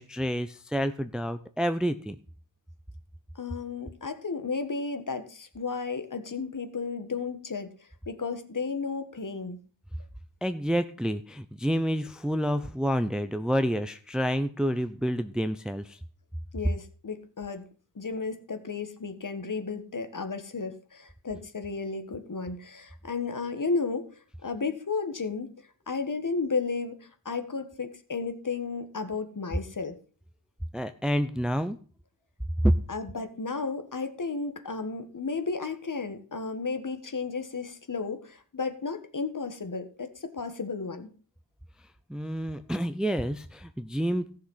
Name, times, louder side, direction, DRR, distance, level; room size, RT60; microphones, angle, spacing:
voice 1, 0.0-2.2 10.4-16.0 30.7-31.8 32.6-32.7 42.1-44.4, equal, ahead, 10 dB, 0.7 m, -28 dB
voice 2, 3.3-9.6 16.5-17.7 17.9-24.1 24.4-25.5 25.9-30.0 32.9-41.1, left 4 dB, 45° left, 9 dB, 1.7 m, -33 dB
15.0 x 6.6 x 5.6 m, 0.41 s
cardioid pair, 70°, 45 cm